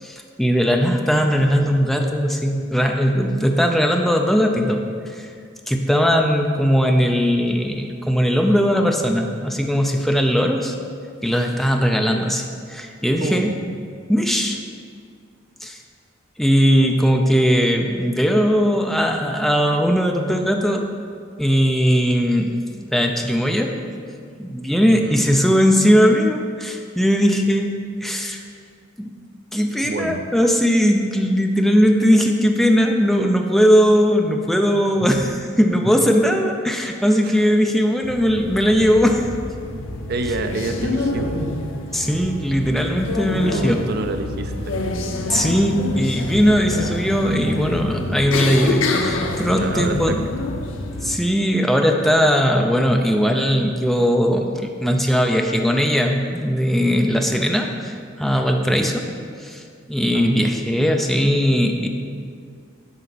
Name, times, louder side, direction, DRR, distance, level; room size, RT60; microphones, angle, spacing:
voice 1, 0.0-4.8 5.1-5.3 5.7-10.7 11.2-13.6 14.1-14.6 15.6-15.8 16.4-20.8 21.4-23.7 24.4-27.8 28.0-28.4 29.0-29.1 29.5-39.3 41.9-43.8 45.3-50.2 51.0-59.0 59.4-61.9, equal, ahead, 2 dB, 0.5 m, -19 dB
voice 2, 13.2-13.5 24.9-25.2 29.8-30.2 37.2-37.4 40.1-41.3 43.5-44.8 49.6-50.2 58.6-58.8 60.1-60.5, right 3 dB, 55° right, 7 dB, 0.5 m, -28 dB
sound 1, 38.0-51.2, left 2 dB, 85° left, 0.6 m, -27 dB
11.0 x 4.0 x 4.1 m, 2.2 s
head